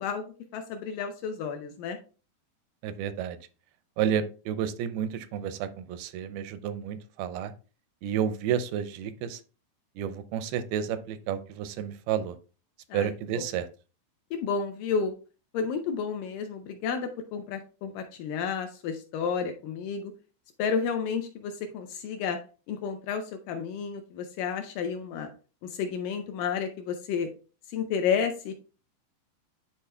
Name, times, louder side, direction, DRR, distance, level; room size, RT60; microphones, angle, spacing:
voice 1, 0.0-2.0 12.9-13.4 14.3-15.2 15.5-20.1 20.6-22.4 22.7-25.3 25.6-27.3 27.7-28.6, left 6 dB, 80° left, 6 dB, 1.9 m, -31 dB
voice 2, 2.8-3.4 4.0-7.5 8.0-9.4 10.0-12.4 12.9-13.7, right 9 dB, 85° right, 12 dB, 2.5 m, -31 dB
10.5 x 4.3 x 2.2 m, 0.35 s
omnidirectional pair, 4.4 m